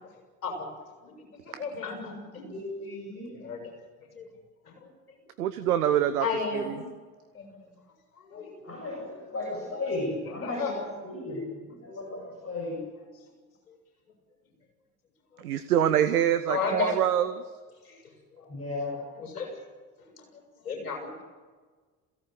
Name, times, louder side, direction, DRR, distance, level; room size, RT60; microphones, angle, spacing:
voice 1, 1.0-2.4 3.3-3.7 4.2-4.3 4.6-5.2 6.2-6.8 7.3-7.7 8.1-8.7 9.2-9.3 10.0-10.7 13.7-13.8 16.5-17.0 17.8-18.5 18.9-19.6 20.0-21.2, left 5 dB, 70° left, 2 dB, 7.3 m, -35 dB
voice 2, 2.3-3.4 8.6-10.8 11.1-12.8 18.5-19.0, left 2 dB, 30° left, -1 dB, 7.9 m, -35 dB
voice 3, 5.4-6.3 6.5-6.6 15.4-17.3, right 10 dB, 75° right, 11 dB, 1.1 m, -24 dB
27.5 x 17.0 x 7.9 m, 1.4 s
figure-of-eight pair, 55°, 46 cm